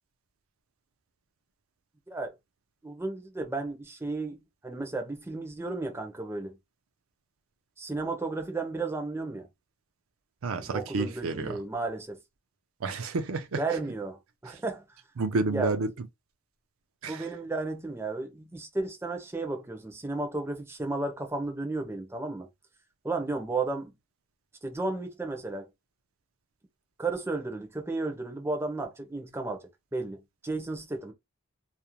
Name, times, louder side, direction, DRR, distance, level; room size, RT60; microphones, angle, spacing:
voice 1, 2.8-6.6 7.8-9.5 10.6-12.2 13.5-14.8 15.5-15.7 17.1-22.5 23.0-23.9 24.6-25.7 27.0-31.1, right 3 dB, 10° right, 0.5 m, -33 dB
voice 2, 10.4-11.6 12.8-13.6 14.5-14.6 15.2-16.1 17.0-17.3, right 3 dB, 70° right, 0.5 m, -30 dB
2.4 x 2.0 x 2.9 m
head